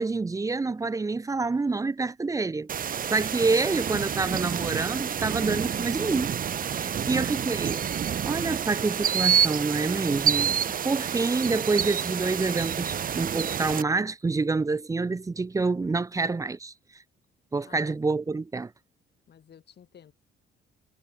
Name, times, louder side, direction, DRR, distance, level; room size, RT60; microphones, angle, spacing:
voice 1, 0.0-6.4 6.7-7.8 8.2-16.7 17.5-18.7, right 3 dB, 15° right, 0.5 m, -27 dB
Bowed string instrument, 2.6-7.4, left 13 dB, 80° left, 7.3 m, -56 dB
sound 1, 2.7-13.8, right 8 dB, 45° right, 0.8 m, -28 dB
voice 2, 6.9-7.6 17.6-18.4 19.3-20.1, left 8 dB, 55° left, 7.5 m, -52 dB
cardioid pair, 90°, 20 cm